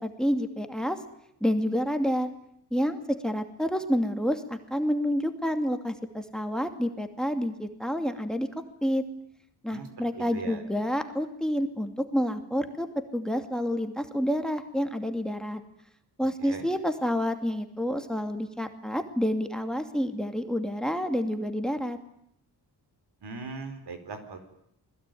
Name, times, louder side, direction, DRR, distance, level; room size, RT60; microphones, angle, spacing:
voice 1, 0.0-1.0 1.4-2.3 2.7-8.5 8.8-9.0 9.6-12.9 13.1-15.6 16.2-22.0, equal, ahead, 7 dB, 2.5 m, -28 dB
voice 2, 9.7-10.6 16.4-16.6 23.2-24.4, right 4 dB, 75° right, 8 dB, 4.8 m, -39 dB
28.5 x 20.5 x 9.3 m, 0.74 s
cardioid pair, 90°, 41 cm